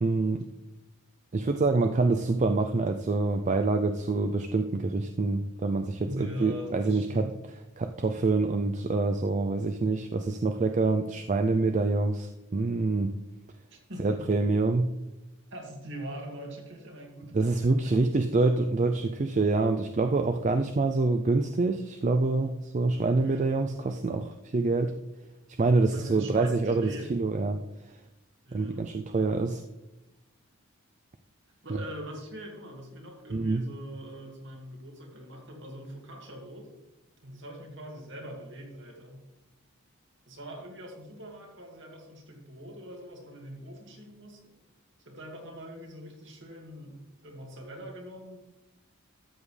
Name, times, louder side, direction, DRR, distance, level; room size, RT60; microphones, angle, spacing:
voice 1, 0.0-0.4 1.3-13.2 14.0-14.9 17.3-24.9 25.6-27.6 28.5-29.6 33.3-33.6, right 3 dB, 35° right, 7 dB, 0.4 m, -26 dB
voice 2, 6.0-7.4 13.7-14.3 15.5-18.0 23.2-23.5 25.8-27.1 28.5-28.9 31.6-36.8 37.2-39.2 40.3-44.5 45.1-48.4, equal, 55° right, 1 dB, 2.2 m, -42 dB
13.0 x 7.4 x 3.3 m, 1.0 s
head